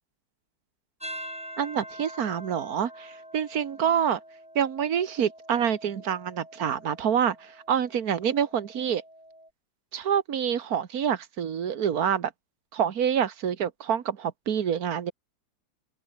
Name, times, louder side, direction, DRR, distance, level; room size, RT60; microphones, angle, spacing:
sound 1, 1.0-9.5, equal, 5° right, 3.2 m, -45 dB
voice 1, 1.6-4.2 4.6-9.0 9.9-12.3 12.7-15.1, right 8 dB, 50° right, 1.7 m, -27 dB
open air
omnidirectional pair, 2.2 m